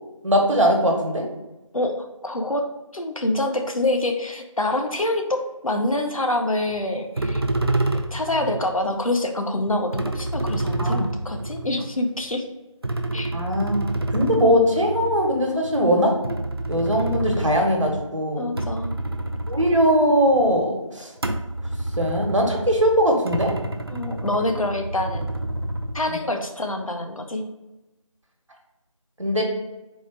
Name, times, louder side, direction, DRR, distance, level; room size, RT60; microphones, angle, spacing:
voice 1, 0.2-1.2 10.8-11.1 13.3-16.1 16.7-18.5 19.5-21.1 22.0-23.5 26.1-26.2 29.2-29.4, equal, 65° right, 1 dB, 1.2 m, -20 dB
voice 2, 1.7-2.7 2.9-7.4 8.1-12.4 13.1-13.3 18.4-19.0 23.9-25.3 25.9-27.4, left 1 dB, 85° left, 4 dB, 0.8 m, -26 dB
sound 1, 6.7-6.8 7.2-8.8 9.7-12.2 12.8-18.1 18.4-20.6 21.2-26.2, right 1 dB, 50° right, 0.4 m, -28 dB
4.2 x 2.5 x 4.5 m, 1.0 s
figure-of-eight pair, 170°, 17 cm